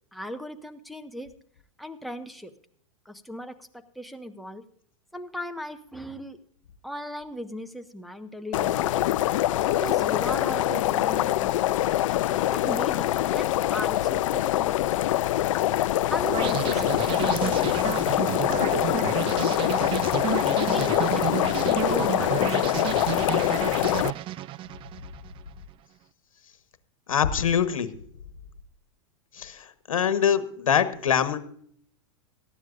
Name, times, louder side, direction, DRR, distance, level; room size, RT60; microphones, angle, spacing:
voice 1, 0.1-1.3 1.8-2.5 3.0-4.6 5.1-6.4 6.8-9.1 9.6-11.9 12.5-14.9 16.1-18.2 18.6-20.3 20.7-23.3, equal, ahead, 5 dB, 1.2 m, -38 dB
sound 1, 8.5-24.1, left 14 dB, 70° left, 0.5 m, -24 dB
sound 2, 16.3-25.4, right 14 dB, 30° right, 0.5 m, -31 dB
voice 2, 27.1-27.9 29.3-31.4, left 8 dB, 85° left, 11 dB, 1.3 m, -24 dB
18.0 x 13.0 x 2.5 m, 0.62 s
hypercardioid pair, 110°, 17 cm